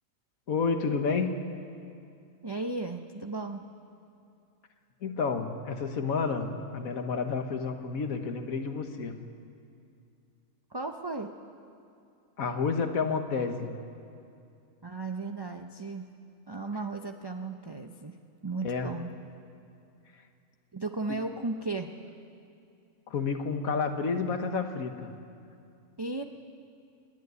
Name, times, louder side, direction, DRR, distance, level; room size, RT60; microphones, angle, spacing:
voice 1, 0.5-1.4 5.0-9.2 12.4-13.7 18.6-18.9 21.1-21.2 23.1-25.1, left 5 dB, 75° left, 6 dB, 1.7 m, -30 dB
voice 2, 2.4-3.6 10.7-11.3 14.8-16.1 16.5-18.2 18.4-19.1 20.7-21.9 26.0-26.2, right 3 dB, 25° right, 4 dB, 0.5 m, -35 dB
27.0 x 11.0 x 9.4 m, 2.5 s
omnidirectional pair, 1.5 m